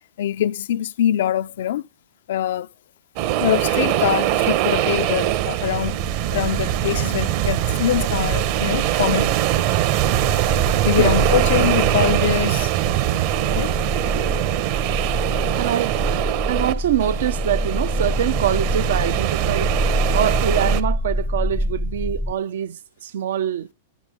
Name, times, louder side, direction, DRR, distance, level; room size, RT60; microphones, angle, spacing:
voice 1, 0.2-1.9 2.3-2.7 3.4-6.0 6.3-9.3 10.8-12.7 13.5-13.7, left 11 dB, 70° left, 0.6 m, -23 dB
sound 1, 3.2-20.8, right 13 dB, 50° right, 1.2 m, -22 dB
sound 2, 5.8-22.3, left 1 dB, ahead, 0.6 m, -27 dB
voice 2, 13.4-13.8 15.6-16.0 16.4-19.7 20.1-23.7, right 10 dB, 70° right, 0.8 m, -24 dB
13.0 x 12.0 x 3.6 m
hypercardioid pair, 115°, 0 cm